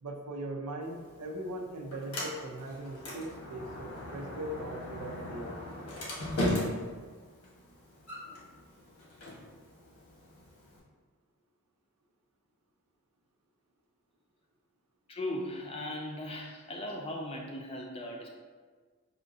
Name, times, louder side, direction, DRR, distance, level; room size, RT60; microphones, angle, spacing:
voice 1, 0.0-5.5, right 1 dB, 85° right, 2 dB, 0.5 m, -40 dB
Sliding door, 0.8-10.8, left 1 dB, 90° left, 1.2 m, -39 dB
voice 2, 15.1-18.3, left 1 dB, 25° left, 0 dB, 0.4 m, -38 dB
5.6 x 2.7 x 2.6 m, 1.5 s
head